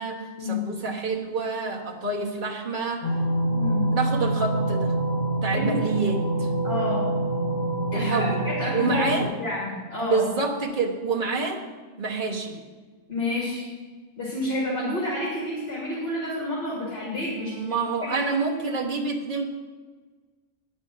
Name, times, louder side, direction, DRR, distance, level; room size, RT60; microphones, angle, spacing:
voice 1, 0.0-3.1 3.9-4.9 5.4-6.5 7.9-8.4 8.7-9.3 10.1-11.6 12.0-12.6 17.3-19.4, right 4 dB, 45° right, 0 dB, 1.4 m, -27 dB
sound 1, 3.0-9.2, right 1 dB, 25° left, 1.9 m, -26 dB
voice 2, 3.5-3.8 5.5-5.8 6.6-7.0 7.9-10.2 13.1-13.7 14.2-17.7 18.0-18.3, left 1 dB, 60° left, -7 dB, 2.5 m, -29 dB
9.5 x 5.4 x 7.3 m, 1.4 s
omnidirectional pair, 1.2 m